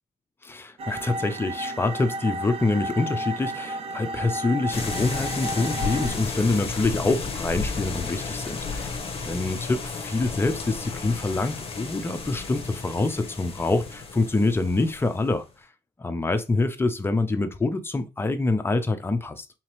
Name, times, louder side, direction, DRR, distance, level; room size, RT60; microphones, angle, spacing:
voice 1, 0.4-15.4 16.0-19.5, left 2 dB, 15° left, 0.5 m, -26 dB
sound 1, 0.8-6.2, right 1 dB, 35° right, 0.6 m, -33 dB
sound 2, 4.7-15.4, left 4 dB, 35° left, 1.0 m, -33 dB
3.9 x 2.8 x 3.0 m
cardioid pair, 110°, 17 cm